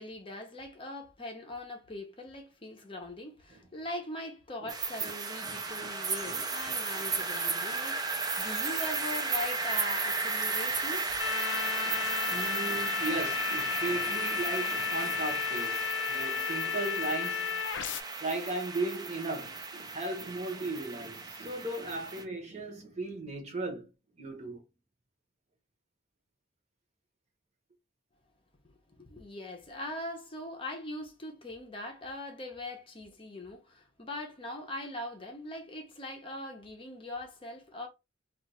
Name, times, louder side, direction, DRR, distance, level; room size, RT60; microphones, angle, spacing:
voice 1, 0.0-11.1 29.0-37.9, left 1 dB, 25° left, 0.7 m, -41 dB
sound 1, 4.7-22.2, right 4 dB, 20° right, 0.5 m, -34 dB
sound 2, 11.2-18.0, left 9 dB, 65° left, 0.4 m, -33 dB
voice 2, 11.5-17.6 18.2-23.9 24.2-24.6, right 2 dB, 35° right, 0.9 m, -37 dB
2.4 x 2.4 x 4.1 m
head